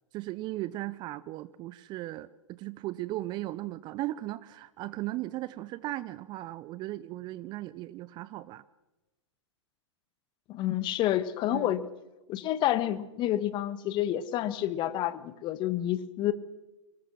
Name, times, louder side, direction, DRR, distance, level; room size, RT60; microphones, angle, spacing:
voice 1, 0.1-8.6 11.5-11.8, right 16 dB, 30° right, 17 dB, 0.6 m, -37 dB
voice 2, 10.5-11.8 12.3-16.3, left 13 dB, 30° left, 14 dB, 1.4 m, -29 dB
25.0 x 20.0 x 6.2 m, 1.1 s
figure-of-eight pair, 110°, 16 cm